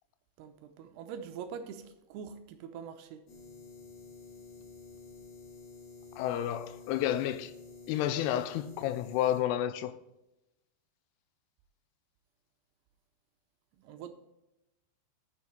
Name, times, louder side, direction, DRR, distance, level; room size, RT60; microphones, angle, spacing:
voice 1, 0.4-3.2 13.8-14.1, right 7 dB, 80° right, 2.6 m, -44 dB
sound 1, 3.3-9.4, left 4 dB, 55° left, 4.0 m, -50 dB
voice 2, 6.2-7.5 7.9-9.9, left 11 dB, 80° left, 2.6 m, -30 dB
8.4 x 7.2 x 4.5 m
omnidirectional pair, 5.0 m